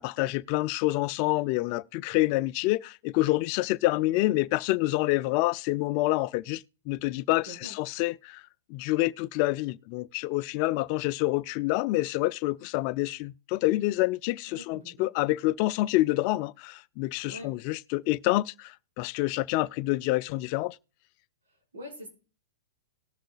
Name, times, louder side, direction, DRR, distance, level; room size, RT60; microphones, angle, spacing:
voice 1, 0.0-8.4 8.7-20.8, left 18 dB, 40° left, 0.4 m, -27 dB
voice 2, 7.5-7.8 14.5-14.9 17.3-17.6 21.7-22.1, equal, 80° right, 4.8 m, -43 dB
19.0 x 6.4 x 2.4 m
hypercardioid pair, 140°, 0 cm